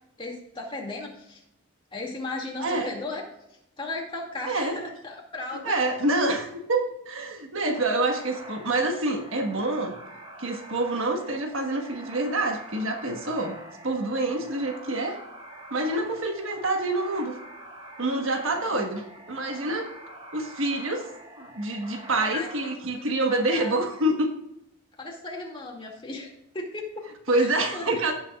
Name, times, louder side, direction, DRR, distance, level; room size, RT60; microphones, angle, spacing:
voice 1, 0.2-1.4 1.9-3.2 3.8-5.7 9.5-9.6 18.2-18.8 22.2-23.7 25.0-28.1, left 2 dB, 25° left, -1 dB, 2.3 m, -37 dB
voice 2, 2.6-2.9 4.5-4.8 5.6-9.9 10.4-13.6 13.8-15.2 15.7-17.3 18.0-19.9 20.3-21.1 21.4-24.3 27.3-28.1, right 2 dB, 70° right, 3 dB, 1.4 m, -27 dB
sound 1, 7.7-22.7, right 1 dB, 25° right, 1.1 m, -45 dB
16.5 x 7.1 x 2.4 m, 0.83 s
head